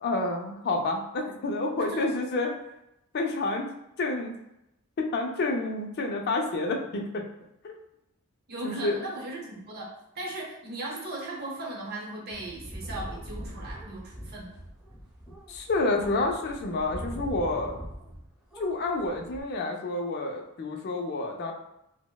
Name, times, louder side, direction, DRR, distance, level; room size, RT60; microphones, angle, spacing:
voice 1, 0.0-2.5 3.1-3.7 4.0-4.4 5.0-7.3 7.6-7.8 8.6-9.0 15.5-17.8 18.6-21.5, left 2 dB, 45° left, 2 dB, 0.4 m, -29 dB
voice 2, 8.5-14.6, right 2 dB, 45° right, -2 dB, 0.8 m, -37 dB
sound 1, 12.3-18.2 18.5-19.4, equal, ahead, 0.9 m, -41 dB
4.1 x 2.0 x 2.2 m, 0.83 s
head